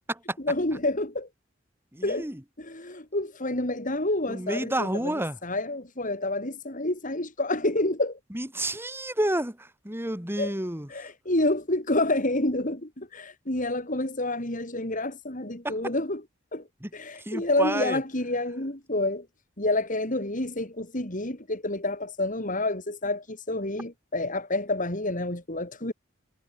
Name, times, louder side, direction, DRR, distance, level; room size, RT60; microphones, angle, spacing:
voice 1, 0.4-1.3 2.0-2.3 2.6-8.2 10.4-10.5 10.9-16.2 16.5-16.7 16.9-19.3 19.6-25.9, left 2 dB, 40° left, 4.9 m, -28 dB
voice 2, 1.9-2.4 4.3-5.4 8.3-10.9 16.8-16.9 17.3-18.0, right 1 dB, 10° right, 3.7 m, -30 dB
head